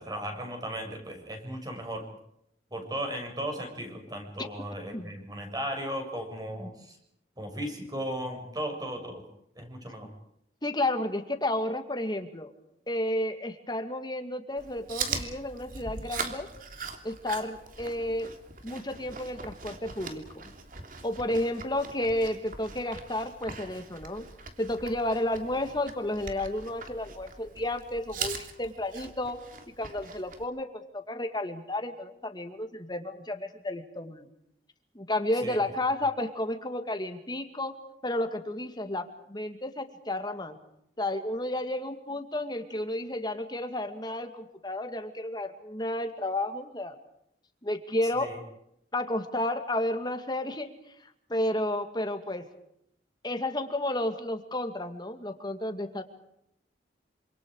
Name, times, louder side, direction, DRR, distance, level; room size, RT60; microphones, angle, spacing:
voice 1, 0.0-2.0 2.7-6.9 7.4-9.2 9.6-10.1 35.4-35.6 48.2-48.4, equal, 20° right, 3 dB, 6.7 m, -36 dB
voice 2, 10.6-12.5 12.9-16.5 17.0-18.3 18.6-20.5 21.0-24.3 24.6-29.4 29.8-34.3 34.9-37.7 38.0-40.6 41.0-47.0 47.6-48.3 48.9-50.7 51.0-52.4 53.2-56.0, left 1 dB, 25° left, 7 dB, 2.3 m, -32 dB
Chewing mastication, 14.6-30.4, right 5 dB, 50° right, 3.1 m, -41 dB
27.5 x 26.5 x 4.9 m, 0.76 s
head